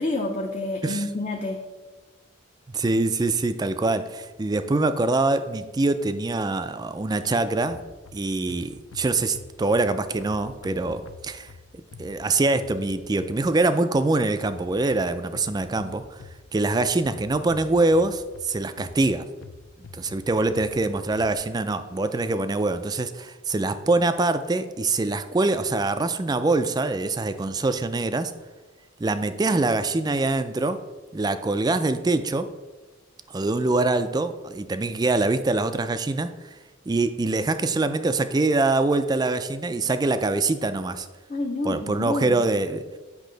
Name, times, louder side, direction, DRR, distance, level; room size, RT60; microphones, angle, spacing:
voice 1, 0.0-1.6 41.3-42.4, left 2 dB, 35° left, 0 dB, 0.6 m, -28 dB
voice 2, 2.7-7.8 8.1-11.5 12.0-16.2 16.5-19.3 19.9-28.3 29.0-30.8 31.1-32.5 33.3-36.3 36.9-41.1 41.6-42.8, right 2 dB, 20° right, 11 dB, 0.3 m, -24 dB
sound 1, 7.6-13.7 14.5-21.3, left 4 dB, 80° left, 0.5 m, -47 dB
8.3 x 5.6 x 3.9 m, 1.2 s
head